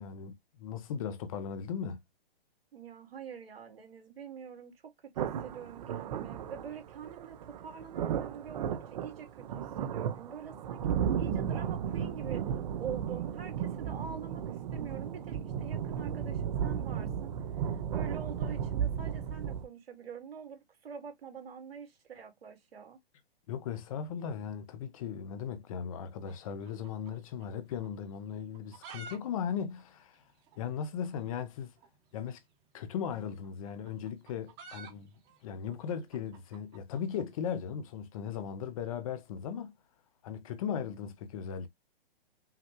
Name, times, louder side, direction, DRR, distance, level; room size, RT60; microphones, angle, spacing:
voice 1, 0.0-2.0 23.5-30.2 30.6-31.7 32.1-32.4 32.7-35.1 35.4-39.7 40.2-41.7, left 7 dB, 35° left, 0.7 m, -37 dB
voice 2, 2.7-12.5 12.8-17.3 17.7-23.0, right 7 dB, 75° right, 2.1 m, -46 dB
sound 1, 5.2-19.7, right 8 dB, 45° right, 0.7 m, -34 dB
sound 2, 26.2-27.6 27.8-27.9 28.4-29.2 29.4-29.5 29.8-29.9 30.5-30.6 31.7-31.9 33.1-37.3, right 4 dB, 25° right, 1.1 m, -50 dB
5.6 x 2.3 x 3.0 m
hypercardioid pair, 150°, 30 cm